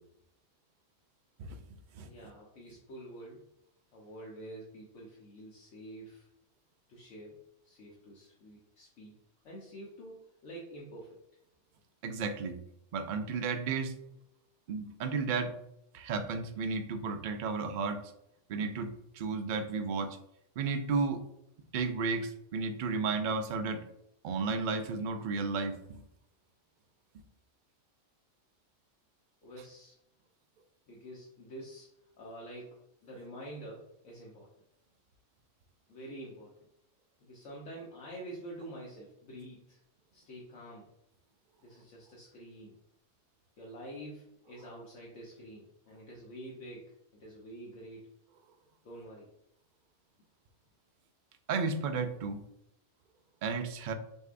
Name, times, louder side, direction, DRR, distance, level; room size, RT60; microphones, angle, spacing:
voice 1, 2.0-3.5 3.9-6.3 6.9-9.1 9.4-11.2 29.4-29.9 30.9-34.5 35.9-36.6 37.2-39.8 40.1-40.9 41.6-42.7 43.6-48.1 48.8-49.3, right 1 dB, 75° left, -3 dB, 1.1 m, -47 dB
voice 2, 12.0-12.6 12.9-14.0 14.7-15.5 15.9-18.0 18.5-20.2 20.6-21.2 21.7-23.8 24.2-26.0 51.5-52.4 53.4-53.9, right 4 dB, 65° right, 7 dB, 0.4 m, -33 dB
6.4 x 2.7 x 2.5 m, 0.80 s
omnidirectional pair, 1.3 m